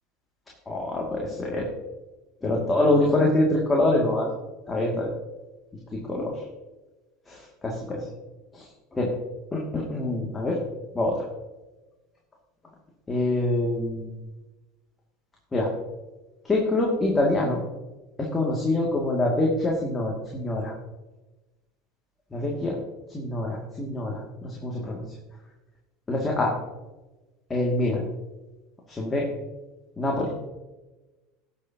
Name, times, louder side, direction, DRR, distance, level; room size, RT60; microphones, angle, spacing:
voice 1, 0.7-1.7 2.4-4.3 4.7-5.1 5.9-6.4 7.3-8.1 8.5-8.7 8.9-9.1 9.5-10.6 10.9-11.2 13.1-14.1 15.5-15.7 16.4-17.6 18.2-20.7 22.3-22.8 23.1-25.0 26.1-26.5 27.5-28.0 28.9-29.3 30.0-30.3, left 2 dB, 20° left, -2 dB, 2.3 m, -25 dB
19.0 x 7.1 x 2.9 m, 1.1 s
figure-of-eight pair, 75°, 0 cm